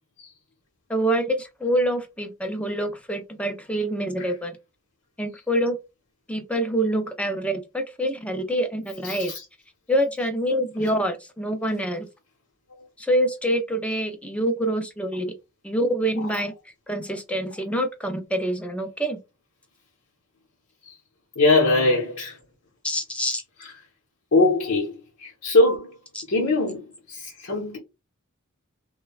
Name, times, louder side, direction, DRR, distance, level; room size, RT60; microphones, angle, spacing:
voice 1, 0.9-4.5 5.2-5.8 6.3-9.3 9.9-12.1 13.0-15.3 15.6-16.6 16.9-19.2 22.8-23.4 26.1-26.2, right 1 dB, 5° left, 0.4 m, -26 dB
voice 2, 9.0-9.4 20.8-20.9 21.4-22.4 23.6-23.7 24.3-26.0 26.3-27.8, left 2 dB, 85° left, 0.9 m, -22 dB
3.1 x 2.2 x 2.3 m
head